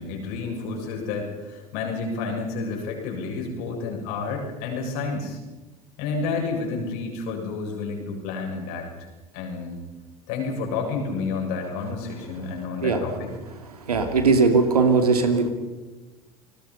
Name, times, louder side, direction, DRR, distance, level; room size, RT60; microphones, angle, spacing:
voice 1, 0.0-5.4 6.0-8.9 9.3-9.8 10.3-13.3 13.9-14.2, left 4 dB, 65° left, 1 dB, 7.4 m, -30 dB
voice 2, 13.9-15.5, right 4 dB, 85° right, 6 dB, 2.8 m, -19 dB
29.5 x 20.0 x 5.6 m, 1.2 s
figure-of-eight pair, 70°, 19 cm